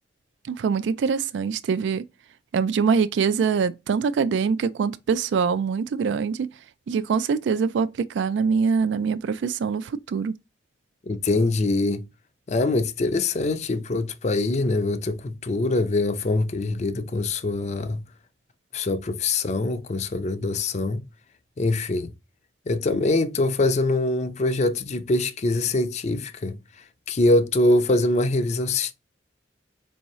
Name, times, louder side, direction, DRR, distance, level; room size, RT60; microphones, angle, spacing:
voice 1, 0.5-2.0 2.5-6.5 6.9-7.9 8.1-10.3, right 5 dB, 75° right, 0.3 m, -24 dB
voice 2, 11.1-12.0 12.5-18.0 18.7-21.0 21.6-22.1 22.7-26.6 27.1-28.9, left 2 dB, 40° left, 0.4 m, -23 dB
4.5 x 2.7 x 3.0 m
head